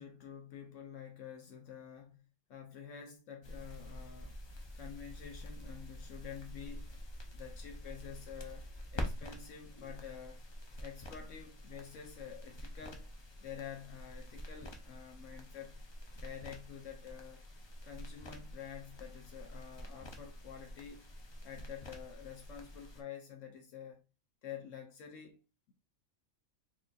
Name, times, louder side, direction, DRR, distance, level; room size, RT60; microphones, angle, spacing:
voice 1, 0.0-4.3 4.8-7.0 7.3-10.4 10.8-13.1 13.4-15.8 16.2-17.4 17.8-21.1 21.4-24.0 24.4-25.7, left 8 dB, 75° left, 1.0 m, -49 dB
sound 1, 3.4-23.0, left 1 dB, 45° left, 0.3 m, -47 dB
4.4 x 2.4 x 2.6 m
omnidirectional pair, 1.3 m